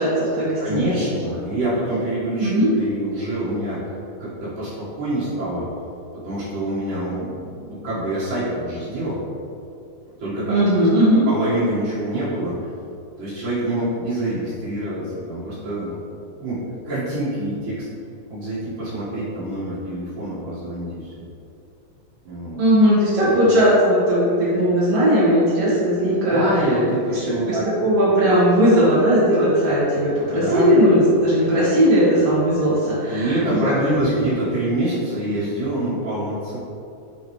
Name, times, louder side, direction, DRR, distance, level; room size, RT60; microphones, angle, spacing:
voice 1, 0.0-0.9 2.4-2.7 10.5-11.2 22.6-26.5 27.5-33.6 34.1-34.3, equal, 60° right, -10 dB, 1.9 m, -18 dB
voice 2, 0.6-3.9 4.2-5.6 6.2-9.2 10.2-10.7 11.0-12.7 13.2-16.0 16.4-17.9 18.3-21.1 22.3-22.6 23.2-23.5 26.2-27.7 30.4-30.7 33.1-36.6, right 1 dB, 75° right, -12 dB, 3.1 m, -26 dB
9.2 x 4.0 x 3.1 m, 2.7 s
omnidirectional pair, 3.9 m